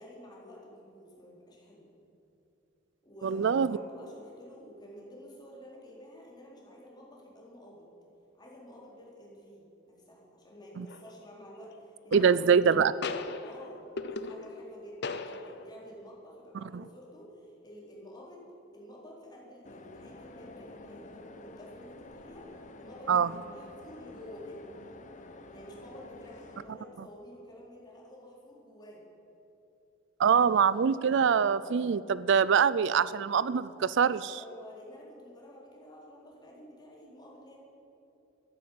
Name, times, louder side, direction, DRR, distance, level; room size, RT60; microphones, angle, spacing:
voice 1, 0.0-1.9 3.0-7.9 8.4-12.3 13.4-18.4 18.7-24.6 25.5-29.0 34.3-37.6, equal, 20° left, -4 dB, 4.0 m, -50 dB
voice 2, 3.2-3.8 10.8-10.9 12.1-12.9 23.1-23.3 30.2-34.4, right 7 dB, 65° right, 17 dB, 0.4 m, -24 dB
sound 1, 10.9-11.3 12.1-12.7 13.0-14.7 15.0-15.8, left 4 dB, 60° left, 0.8 m, -38 dB
sound 2, 19.6-26.7, left 2 dB, 40° left, 1.0 m, -50 dB
14.0 x 10.5 x 8.6 m, 2.9 s
head